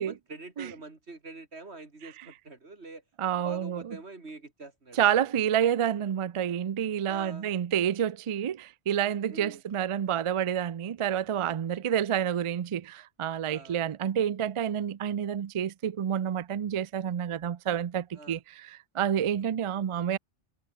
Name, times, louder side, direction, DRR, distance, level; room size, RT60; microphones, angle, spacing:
voice 1, 0.0-3.0 3.4-5.0 7.1-7.5 9.3-9.6 13.4-13.8 18.1-18.4, right 3 dB, 90° right, 3.5 m, -45 dB
voice 2, 3.2-4.0 5.0-20.2, right 9 dB, 50° right, 0.4 m, -29 dB
omnidirectional pair, 1.1 m